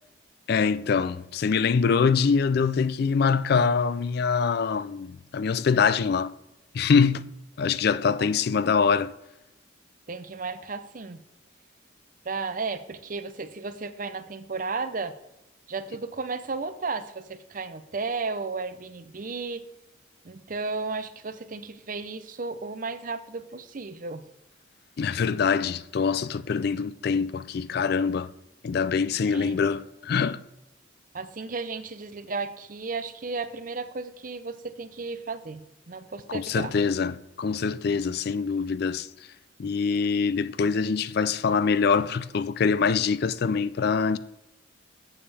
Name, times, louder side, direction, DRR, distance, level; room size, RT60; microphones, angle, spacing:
voice 1, 0.5-6.3 6.7-7.3 7.6-9.1 25.0-28.3 28.6-30.4 36.3-39.1 39.6-44.2, left 5 dB, 50° left, 0.3 m, -24 dB
voice 2, 10.1-11.2 12.3-15.1 15.7-19.6 20.2-24.2 29.3-29.6 31.1-35.6 35.9-36.7, right 4 dB, 40° right, 0.6 m, -34 dB
14.0 x 7.1 x 3.4 m
head